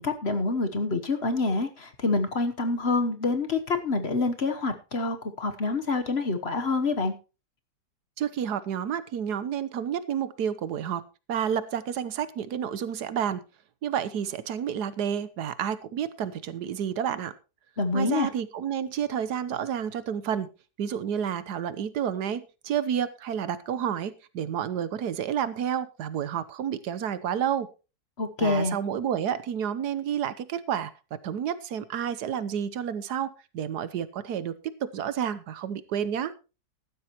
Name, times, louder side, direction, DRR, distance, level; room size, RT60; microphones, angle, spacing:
voice 1, 0.0-7.1 17.8-18.3 28.2-28.8, left 3 dB, 45° left, 8 dB, 1.2 m, -27 dB
voice 2, 8.2-11.0 11.3-13.4 13.8-17.3 17.9-20.5 20.8-27.7 28.4-30.9 31.2-34.5 34.8-36.3, right 8 dB, 75° right, 15 dB, 1.4 m, -30 dB
14.5 x 12.0 x 3.0 m, 0.31 s
omnidirectional pair, 1.8 m